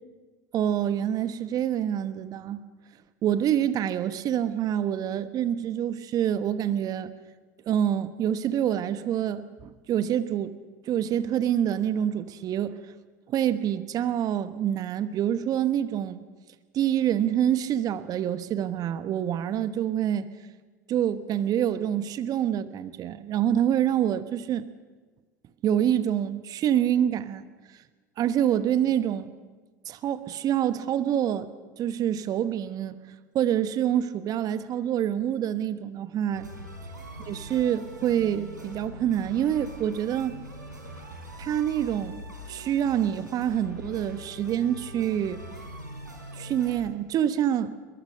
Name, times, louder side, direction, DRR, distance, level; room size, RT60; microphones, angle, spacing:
voice 1, 0.5-2.6 3.2-7.1 7.7-10.5 10.9-12.7 13.3-16.2 16.7-20.3 20.9-24.7 25.6-27.4 28.2-29.3 29.9-31.5 31.8-33.0 33.3-36.5 37.3-40.4 41.4-42.2 42.5-45.4 46.3-47.7, right 10 dB, 40° right, 13 dB, 1.2 m, -26 dB
sound 1, 36.3-46.8, right 1 dB, 90° right, 4.1 m, -42 dB
22.5 x 21.5 x 6.7 m, 1.3 s
figure-of-eight pair, 75°, 10 cm